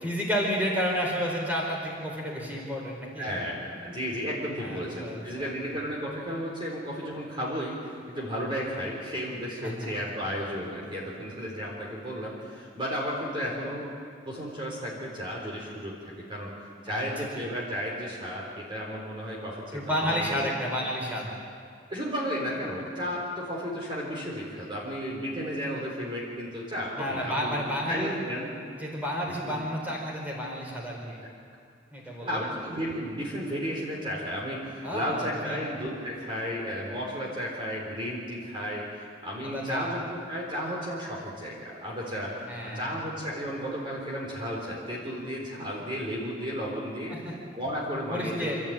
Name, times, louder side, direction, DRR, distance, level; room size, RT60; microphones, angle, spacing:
voice 1, 0.0-3.3 4.6-5.5 9.6-9.9 16.9-17.1 19.7-21.3 27.0-28.2 28.8-31.2 31.9-32.4 34.8-35.7 39.4-39.9 42.5-43.0 47.1-47.3 48.1-48.6, equal, 10° right, -2 dB, 4.6 m, -31 dB
voice 2, 3.2-13.9 14.3-16.5 16.8-20.5 21.9-28.5 29.4-29.6 32.2-48.5, equal, 30° right, -4 dB, 3.9 m, -33 dB
26.5 x 14.0 x 8.8 m, 2.3 s
head